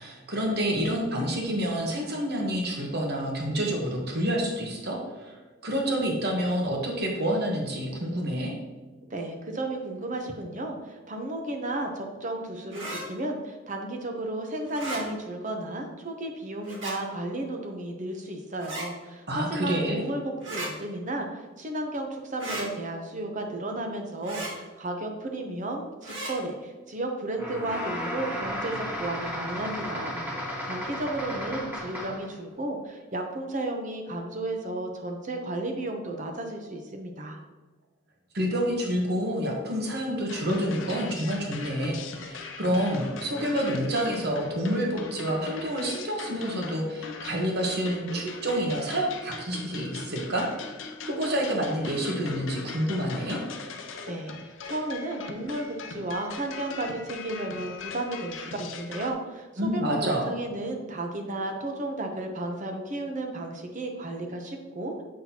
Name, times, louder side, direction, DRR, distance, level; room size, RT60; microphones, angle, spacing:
voice 1, 0.0-5.3 5.6-8.5 19.3-20.0 38.3-50.7 51.1-53.4 59.6-60.3, equal, 55° right, 0 dB, 1.2 m, -28 dB
voice 2, 9.1-37.4 54.1-54.4 54.6-65.0, right 1 dB, 40° right, 3 dB, 0.8 m, -33 dB
sound 1, 12.7-13.0 14.7-15.0 16.6-17.0 18.6-18.9 20.4-20.7 22.4-22.7 24.2-24.5 26.0-26.3, right 1 dB, 75° right, 1.9 m, -35 dB
sound 2, 27.3-32.3, equal, 10° right, 1.5 m, -34 dB
sound 3, 40.3-59.1, left 4 dB, 75° left, 0.6 m, -40 dB
7.5 x 5.7 x 2.9 m, 1.3 s
head